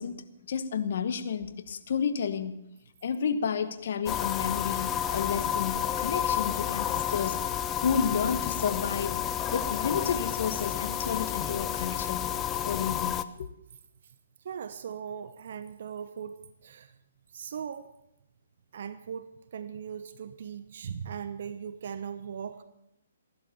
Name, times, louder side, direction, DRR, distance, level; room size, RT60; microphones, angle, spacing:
voice 1, 0.0-2.6 3.0-7.4 7.8-9.2 9.5-12.2 12.6-13.5, left 7 dB, 60° left, 1.4 m, -31 dB
sound 1, 4.1-13.2, left 10 dB, 20° left, 0.7 m, -31 dB
voice 2, 14.4-17.0 17.3-17.9 18.7-22.6, right 7 dB, 60° right, 0.9 m, -39 dB
16.0 x 11.5 x 7.1 m
hypercardioid pair, 135°, 0 cm